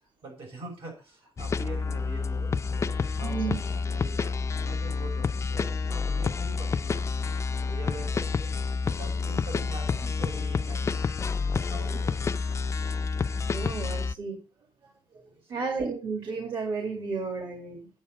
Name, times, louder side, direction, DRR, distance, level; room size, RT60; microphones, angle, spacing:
voice 1, 0.0-11.1 11.5-12.4 15.4-15.7, right 3 dB, 85° right, 0 dB, 5.9 m, -44 dB
sound 1, 1.4-14.1, left 5 dB, 35° left, 0.4 m, -29 dB
voice 2, 3.2-3.6 13.5-14.4 15.5-17.9, right 4 dB, 65° right, 3 dB, 2.0 m, -32 dB
8.8 x 7.0 x 5.1 m, 0.35 s
cardioid pair, 110°, 9 cm